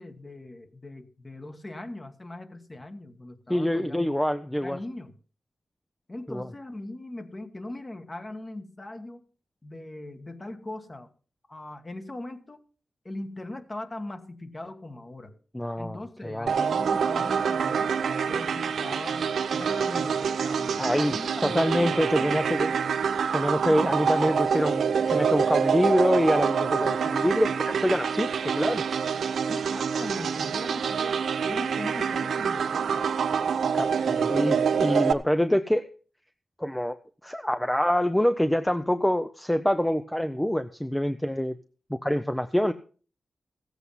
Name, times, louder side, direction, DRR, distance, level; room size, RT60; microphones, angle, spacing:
voice 1, 0.0-4.2 4.5-5.1 6.1-9.2 9.6-11.1 11.5-12.6 13.0-15.4 15.8-22.4 23.7-23.9 29.4-31.2 31.4-33.2, left 2 dB, 25° left, 8 dB, 1.4 m, -40 dB
voice 2, 3.5-4.8 6.3-6.4 15.5-16.5 20.8-21.2 21.4-22.7 23.3-28.3 28.5-28.8 33.7-35.9 36.6-37.0 37.2-41.6 41.9-42.7, equal, 5° left, 10 dB, 0.6 m, -25 dB
sound 1, 16.5-35.1, right 6 dB, 85° right, 0.6 m, -26 dB
15.5 x 8.1 x 5.6 m, 0.39 s
wide cardioid pair, 105°, 0 cm